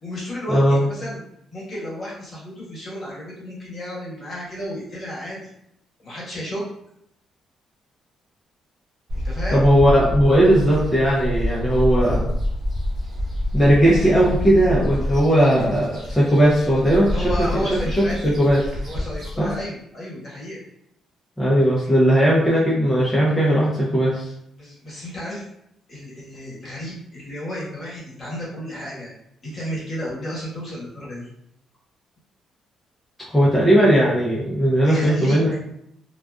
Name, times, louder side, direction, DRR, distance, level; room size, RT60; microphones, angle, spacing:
voice 1, 0.0-1.2 1.5-5.4 6.0-6.6 9.1-9.6 17.1-18.3 18.8-20.6 24.6-25.4 25.9-29.1 29.4-31.3 33.3-33.4 34.8-35.4, equal, 40° left, -6 dB, 1.2 m, -32 dB
voice 2, 0.5-0.9 9.5-12.3 13.5-17.2 17.6-17.7 18.4-18.6 19.4-19.5 21.4-24.3 33.3-35.5, equal, 10° left, -8 dB, 0.6 m, -17 dB
sound 1, 9.1-19.6, left 1 dB, 50° right, 0.9 m, -27 dB
2.4 x 2.3 x 2.3 m, 0.75 s
cardioid pair, 90°, 0 cm